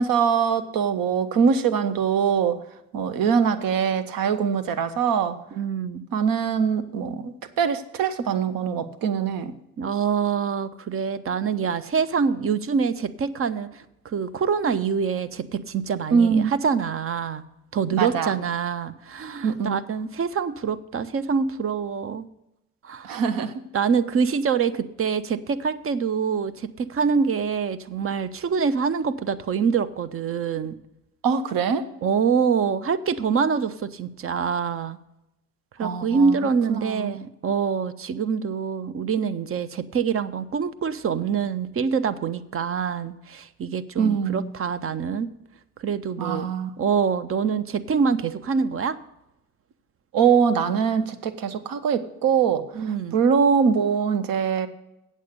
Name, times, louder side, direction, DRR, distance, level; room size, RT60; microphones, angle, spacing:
voice 1, 0.0-2.6 2.9-5.4 6.1-9.5 16.1-16.5 18.0-18.3 19.4-19.8 23.0-23.5 31.2-31.9 35.8-36.4 36.7-37.2 44.0-44.5 46.2-46.7 50.1-52.7 53.1-54.7, right 6 dB, 50° right, 10 dB, 1.0 m, -23 dB
voice 2, 5.5-6.0 9.8-17.4 17.7-22.3 22.8-23.2 23.7-30.8 32.0-35.0 35.8-45.3 45.8-46.5 46.8-49.0 52.7-53.2, right 6 dB, 30° right, 14 dB, 0.6 m, -25 dB
8.3 x 7.4 x 6.6 m, 0.87 s
hypercardioid pair, 55°, 45 cm